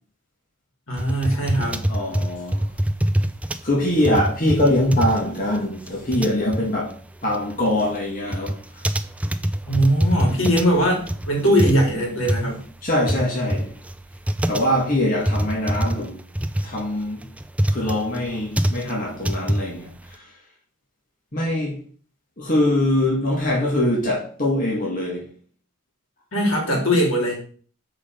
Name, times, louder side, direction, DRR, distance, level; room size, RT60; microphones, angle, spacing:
voice 1, 0.9-1.8 9.7-12.6 26.3-27.4, equal, 75° left, 3.3 m, -20 dB
sound 1, 1.0-20.2, right 1 dB, 5° right, 0.3 m, -25 dB
voice 2, 1.9-2.7 3.6-6.9 7.2-8.6 12.8-13.7 14.5-16.2 16.6-17.2 17.7-20.3 21.3-21.8 22.4-25.3, left 1 dB, 40° left, 1.9 m, -23 dB
7.0 x 4.9 x 5.1 m
head